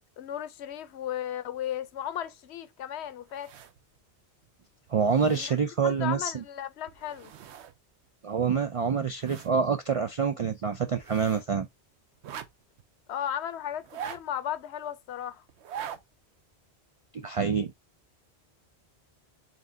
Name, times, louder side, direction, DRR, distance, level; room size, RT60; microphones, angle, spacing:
voice 1, 0.2-3.5 5.3-5.6 5.8-7.3 13.1-15.4, left 10 dB, 80° left, 0.9 m, -35 dB
sound 1, 3.3-4.0 4.4-4.5 4.9-5.9 6.9-7.8 8.0-8.1 8.7-9.6 9.9-10.0 10.9-11.5 12.2-12.8 13.7-14.6 15.5-16.0 16.4-16.5, right 9 dB, 85° right, 0.9 m, -43 dB
voice 2, 4.9-6.4 8.2-11.7 17.1-17.7, right 6 dB, 60° right, 0.3 m, -26 dB
4.3 x 3.7 x 2.5 m
omnidirectional pair, 1.1 m